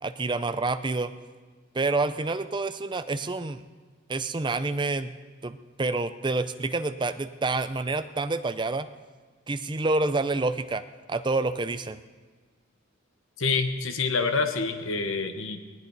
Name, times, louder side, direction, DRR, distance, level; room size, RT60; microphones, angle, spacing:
voice 1, 0.0-1.1 1.7-3.6 4.1-5.1 5.4-8.9 9.5-10.8 11.1-12.0, right 3 dB, 25° right, 11 dB, 0.5 m, -28 dB
voice 2, 13.4-15.6, left 4 dB, 80° left, 7 dB, 1.2 m, -27 dB
19.0 x 18.5 x 4.1 m, 1.4 s
head